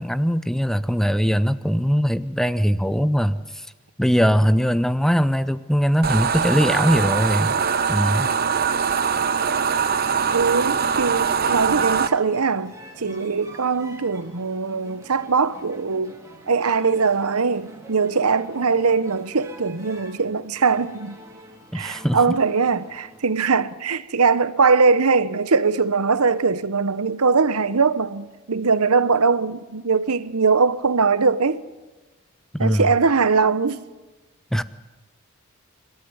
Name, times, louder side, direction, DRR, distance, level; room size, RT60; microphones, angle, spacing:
voice 1, 0.0-3.7 4.0-7.6 7.9-8.3 21.7-22.2 32.5-32.9 34.5-34.6, equal, ahead, 0.6 m, -21 dB
sound 1, 6.0-12.1, right 6 dB, 45° right, 0.9 m, -22 dB
sound 2, 9.9-23.2, right 1 dB, 15° right, 3.0 m, -44 dB
voice 2, 10.3-16.2 16.5-21.2 21.7-31.6 32.6-33.8, right 4 dB, 90° right, 1.0 m, -21 dB
28.5 x 13.5 x 9.8 m
head